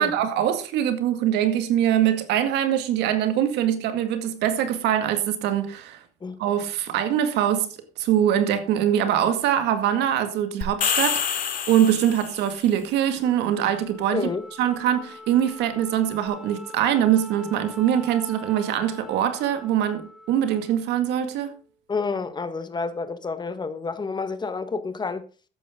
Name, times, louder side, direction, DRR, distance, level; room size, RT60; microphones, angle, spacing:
voice 1, 0.0-6.0 6.4-7.7 8.0-14.3 14.6-21.5, right 10 dB, 85° right, 2.1 m, -23 dB
sound 1, 10.6-12.5, left 8 dB, 55° left, 2.5 m, -26 dB
Wind instrument woodwind instrument, 13.2-21.8, left 2 dB, ahead, 2.2 m, -44 dB
voice 2, 14.1-14.4 21.9-25.2, left 4 dB, 25° left, 1.4 m, -29 dB
13.0 x 9.8 x 3.7 m
cardioid pair, 110°, 17 cm